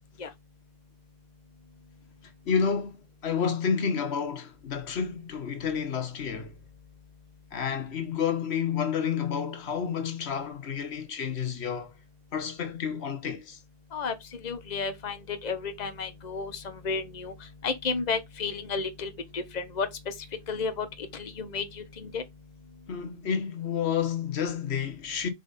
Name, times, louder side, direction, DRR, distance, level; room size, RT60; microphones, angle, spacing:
voice 1, 2.5-6.5 7.5-11.9 12.3-13.6 22.9-25.3, left 7 dB, 60° left, 1.3 m, -30 dB
voice 2, 13.9-20.1 20.5-22.2, left 4 dB, 35° left, 1.0 m, -33 dB
5.1 x 4.8 x 4.1 m
omnidirectional pair, 1.3 m